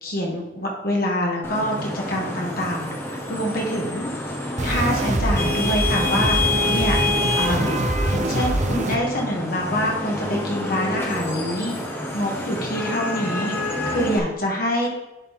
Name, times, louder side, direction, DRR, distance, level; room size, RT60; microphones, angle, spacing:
voice 1, 0.0-4.1 4.6-6.4 6.7-7.7 8.1-13.5 13.9-14.9, equal, 55° left, -1 dB, 1.7 m, -26 dB
Vehicle horn car horn honking / Traffic noise roadway noise, 1.4-14.2, left 2 dB, 15° left, 1.0 m, -28 dB
sound 1, 4.6-9.0, right 2 dB, 40° right, 0.6 m, -24 dB
10.5 x 4.3 x 3.6 m, 1.0 s
head